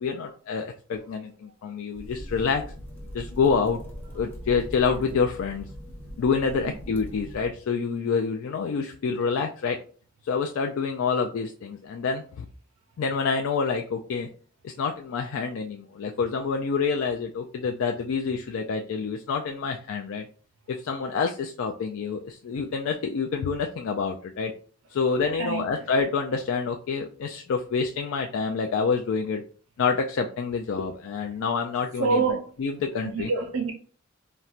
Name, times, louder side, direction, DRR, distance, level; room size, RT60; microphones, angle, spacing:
voice 1, 0.0-2.6 3.1-3.8 4.1-5.7 6.2-9.8 10.2-12.5 13.0-14.3 14.6-20.3 20.7-24.5 24.9-29.4 29.8-32.2 32.6-33.3, left 5 dB, 75° left, 0.3 m, -27 dB
sound 1, 1.9-7.5, equal, 10° left, 0.7 m, -40 dB
voice 2, 25.4-25.8 32.0-32.5 33.0-33.7, right 4 dB, 80° right, 0.5 m, -26 dB
4.1 x 2.1 x 2.4 m
head